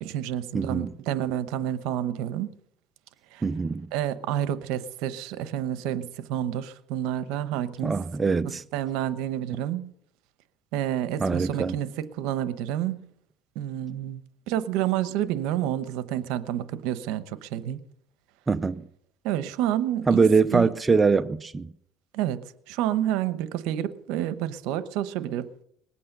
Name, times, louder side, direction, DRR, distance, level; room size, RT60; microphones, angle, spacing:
voice 1, 0.0-2.5 3.3-3.4 3.9-7.9 8.4-9.9 10.7-13.0 13.6-14.2 14.5-17.8 19.2-20.1 20.5-20.7 22.1-22.4 22.7-25.5, right 11 dB, 80° right, 0.9 m, -29 dB
voice 2, 0.5-0.9 3.4-3.9 7.8-8.6 11.2-11.8 18.5-18.8 20.1-21.7, right 4 dB, 20° right, 0.5 m, -23 dB
20.0 x 8.6 x 6.6 m
cardioid pair, 115°, 0 cm